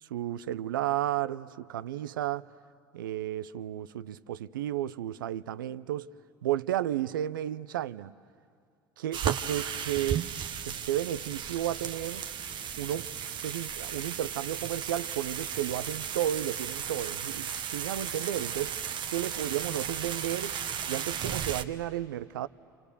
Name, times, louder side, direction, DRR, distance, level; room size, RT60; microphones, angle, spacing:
voice 1, 0.0-2.4 2.9-6.1 6.4-8.2 9.0-10.3 10.6-12.3 12.8-13.1 13.4-18.8 19.1-20.6 20.9-22.5, right 12 dB, 80° right, 0.6 m, -33 dB
sound 1, 9.1-21.6, right 8 dB, 45° right, 1.1 m, -35 dB
28.5 x 27.5 x 6.8 m
hypercardioid pair, 65°, 11 cm